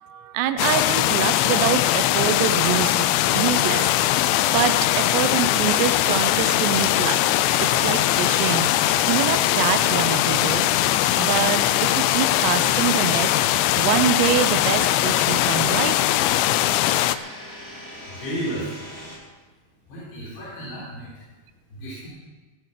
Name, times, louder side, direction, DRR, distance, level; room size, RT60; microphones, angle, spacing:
voice 1, 0.0-3.9 4.4-7.2 7.6-8.7 9.1-10.7 11.1-13.3 13.8-16.0, right 10 dB, 80° right, 10 dB, 2.7 m, -25 dB
sound 1, 0.6-17.2, left 14 dB, 85° left, 2.8 m, -21 dB
sound 2, 1.0-19.2, equal, 20° left, 1.9 m, -40 dB
voice 2, 18.1-18.9 19.9-21.1 21.7-22.1, right 1 dB, 65° left, -9 dB, 6.1 m, -33 dB
17.5 x 6.8 x 7.5 m, 1.3 s
omnidirectional pair, 5.2 m